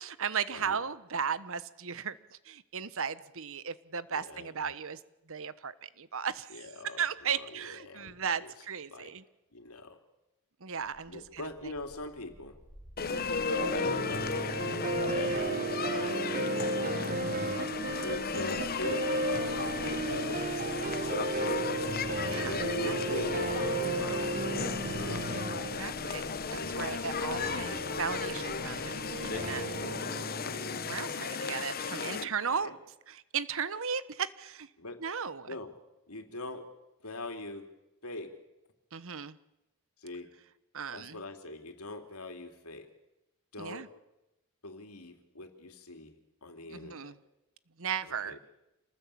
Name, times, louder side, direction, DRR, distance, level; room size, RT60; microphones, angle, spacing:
voice 1, 0.0-5.0 5.3-6.7 7.0-9.2 10.6-11.7 13.0-13.3 15.1-15.5 15.8-16.1 17.4-18.2 22.3-22.6 22.9-23.2 25.1-29.6 30.8-32.7 33.1-34.7 35.0-35.5 38.9-39.4 40.7-41.2 43.6-43.9 46.7-47.2 47.8-48.4, right 6 dB, 65° right, 15 dB, 1.2 m, -36 dB
voice 2, 4.1-4.7 6.5-8.5 8.9-9.1 9.5-10.0 11.1-12.6 13.6-14.5 14.9-15.4 15.8-17.0 18.0-21.7 22.4-25.5 26.5-27.4 27.7-27.8 29.1-30.0 31.1-31.3 32.0-32.8 34.8-35.0 35.5-35.7 36.1-36.7 37.0-37.7 38.0-38.4 40.0-40.3 40.9-42.9 43.5-43.9 44.6-47.1 48.1-48.4, left 2 dB, 85° left, 6 dB, 3.3 m, -43 dB
Bark, 10.7-29.9, equal, 20° right, 4.6 m, -56 dB
sound 1, 13.0-32.2, left 5 dB, 45° left, 0.9 m, -35 dB
sound 2, 13.5-31.1, right 2 dB, 40° right, 1.7 m, -34 dB
27.5 x 19.5 x 8.7 m, 0.92 s
head